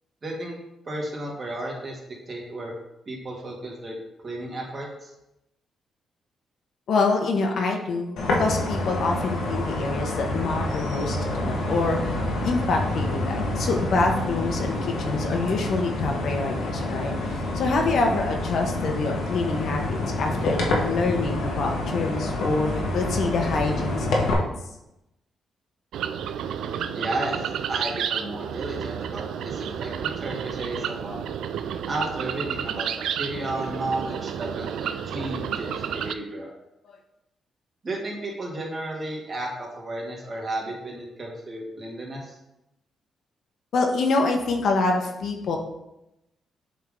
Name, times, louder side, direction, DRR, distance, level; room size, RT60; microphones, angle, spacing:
voice 1, 0.2-0.6 0.9-2.0 2.3-2.7 3.1-3.9 4.2-5.1 26.9-31.2 31.9-32.9 33.2-36.5 37.8-42.4, right 1 dB, 40° right, -2 dB, 2.0 m, -33 dB
voice 2, 6.9-12.2 12.4-24.4 36.9-37.0 43.7-45.6, left 3 dB, 70° left, 2 dB, 1.0 m, -26 dB
sound 1, 8.2-24.3, left 2 dB, 85° left, 1.3 m, -27 dB
sound 2, 25.9-36.1, right 8 dB, 85° right, 0.3 m, -31 dB
7.5 x 3.7 x 3.7 m, 0.88 s
cardioid pair, 85°, 0 cm